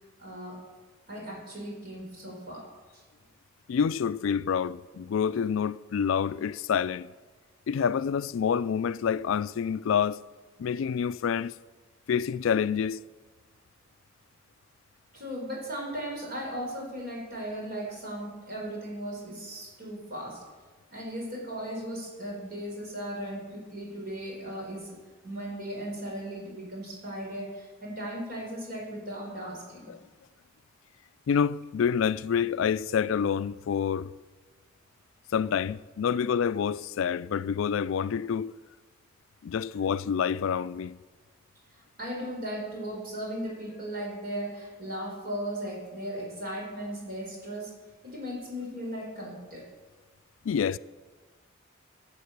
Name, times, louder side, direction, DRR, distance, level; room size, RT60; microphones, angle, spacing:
voice 1, 0.2-0.6 1.1-2.7 15.1-20.4 20.9-25.0 25.2-29.9 41.7-47.8 48.0-49.7, equal, 50° right, 4.6 m, -37 dB
voice 2, 3.7-7.1 7.7-10.2 10.6-11.5 12.1-13.0 29.9-30.0 31.3-34.1 35.3-38.5 39.4-41.0 50.4-50.8, left 7 dB, 75° left, 0.3 m, -27 dB
15.0 x 7.3 x 6.8 m
head